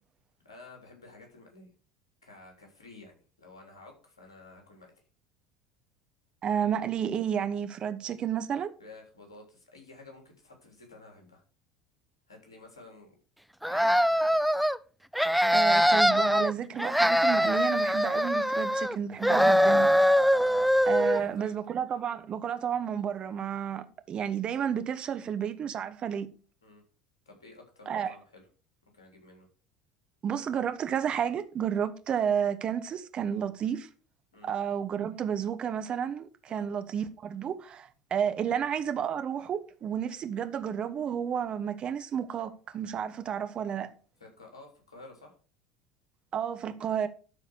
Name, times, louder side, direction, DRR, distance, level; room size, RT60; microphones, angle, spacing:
voice 1, 0.4-1.7 2.2-4.9 8.8-11.4 12.3-13.1 13.7-14.4 20.4-20.7 21.0-21.6 26.6-26.8 27.2-28.4 28.9-29.5 34.3-34.5 36.5-36.7 38.4-38.6 44.2-45.4, left 2 dB, 80° left, 3.3 m, -52 dB
voice 2, 6.4-8.7 15.5-19.9 20.9-26.3 27.9-28.1 30.2-33.9 34.4-43.9 46.3-47.1, right 8 dB, 40° right, 1.2 m, -31 dB
sound 1, 13.6-14.8 15.1-16.5 16.8-19.0 19.2-21.2, equal, ahead, 0.4 m, -23 dB
12.5 x 4.8 x 6.3 m
figure-of-eight pair, 70°, 3 cm